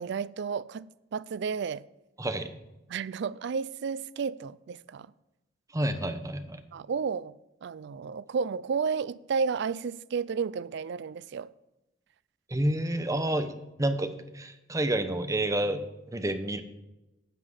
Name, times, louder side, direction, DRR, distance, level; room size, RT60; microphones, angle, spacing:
voice 1, 0.0-1.8 2.9-5.1 6.7-7.3 7.6-11.5, right 5 dB, 65° right, 0.4 m, -32 dB
voice 2, 2.2-2.5 5.7-6.6 12.5-16.6, right 1 dB, 15° right, 0.8 m, -29 dB
9.9 x 5.7 x 8.1 m
head